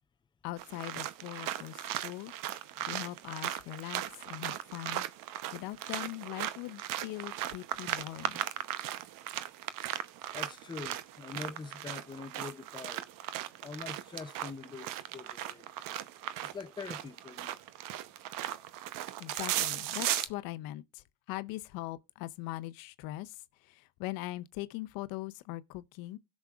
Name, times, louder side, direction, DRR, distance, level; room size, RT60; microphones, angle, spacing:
voice 1, 0.4-2.3 2.9-5.1 5.5-8.4 19.2-23.4 23.6-26.2, left 17 dB, 75° left, 0.7 m, -41 dB
sound 1, 0.6-20.3, right 13 dB, 65° right, 0.9 m, -37 dB
voice 2, 10.3-13.0 13.6-15.7 16.5-17.5, left 5 dB, 15° left, 0.5 m, -44 dB
17.0 x 6.3 x 2.4 m
supercardioid pair, 90°, 35 cm